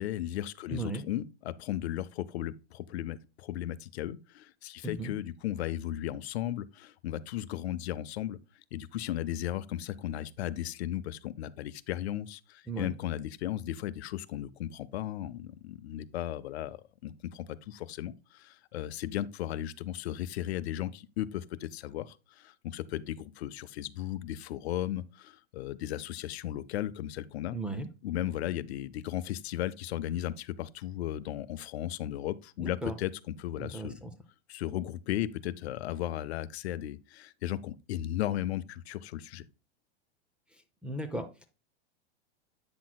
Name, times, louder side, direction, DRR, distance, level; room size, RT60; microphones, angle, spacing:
voice 1, 0.0-8.4 8.7-27.6 28.0-34.0 34.5-39.4, left 12 dB, 80° left, 0.7 m, -36 dB
voice 2, 0.7-1.0 4.8-5.1 12.7-12.9 27.5-27.9 32.6-33.0 33.6-34.1 40.8-41.3, right 2 dB, 5° right, 0.4 m, -36 dB
8.5 x 6.1 x 2.2 m
supercardioid pair, 155°, 32 cm